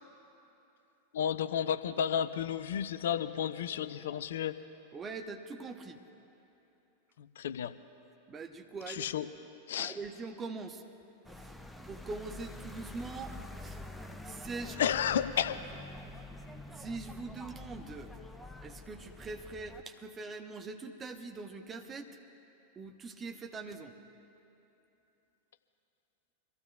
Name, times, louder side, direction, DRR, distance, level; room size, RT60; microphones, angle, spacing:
voice 1, 1.1-4.6 7.2-7.7 8.9-9.3 9.7-9.9 14.8-15.6, left 9 dB, 60° left, 12 dB, 0.4 m, -32 dB
voice 2, 4.9-6.0 8.3-9.1 9.8-10.8 11.3-13.8 14.2-14.8 16.7-18.1 18.6-22.1 22.8-23.9, right 3 dB, 20° right, 5 dB, 0.9 m, -43 dB
sound 1, 11.2-19.8, left 2 dB, ahead, 0.7 m, -47 dB
25.0 x 15.0 x 2.4 m, 3.0 s
figure-of-eight pair, 90°, 0 cm